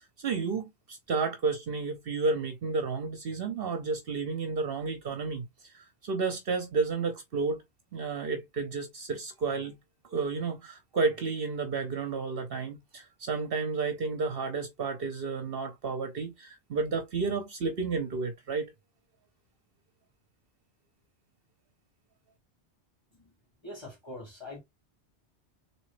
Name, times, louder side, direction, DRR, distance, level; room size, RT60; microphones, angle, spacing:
voice 1, 0.2-7.6 7.9-9.7 10.1-18.7, right 4 dB, 60° right, 0.9 m, -31 dB
voice 2, 23.6-24.6, left 1 dB, 25° left, 1.8 m, -43 dB
3.8 x 2.9 x 3.2 m
omnidirectional pair, 1.2 m